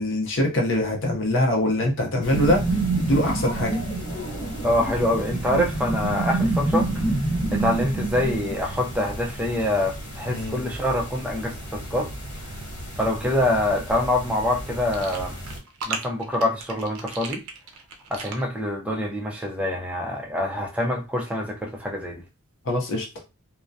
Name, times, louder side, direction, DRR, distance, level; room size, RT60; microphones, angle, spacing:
voice 1, 0.0-3.8 10.3-10.6 22.6-23.1, left 1 dB, 60° left, 0.7 m, -23 dB
sound 1, 2.2-15.6, equal, 90° left, 1.0 m, -36 dB
sound 2, 2.3-9.1, right 2 dB, 35° left, 1.0 m, -26 dB
voice 2, 4.6-7.0 7.5-12.1 13.0-15.4 15.9-17.4 18.1-22.2, left 1 dB, 5° right, 0.5 m, -25 dB
sound 3, 14.9-18.5, right 4 dB, 80° right, 0.5 m, -36 dB
2.2 x 2.1 x 2.6 m
head